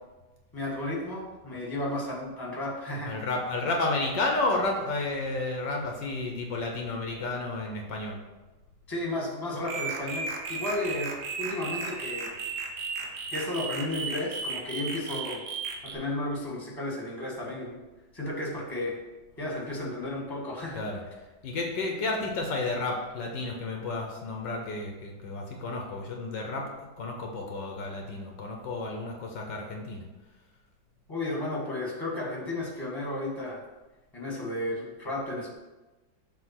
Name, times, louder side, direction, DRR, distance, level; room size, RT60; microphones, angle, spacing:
voice 1, 0.5-3.2 8.9-11.1 11.4-12.3 13.3-15.4 15.9-17.8 18.1-19.0 19.4-20.8 31.1-33.6 34.1-35.5, left 1 dB, 10° left, -3 dB, 1.6 m, -33 dB
voice 2, 3.0-8.2 20.7-21.0 21.4-30.1, left 2 dB, 70° left, 1 dB, 1.5 m, -31 dB
sound 1, 9.6-15.9, right 4 dB, 60° right, 1.3 m, -35 dB
7.2 x 3.4 x 5.9 m, 1.1 s
omnidirectional pair, 2.1 m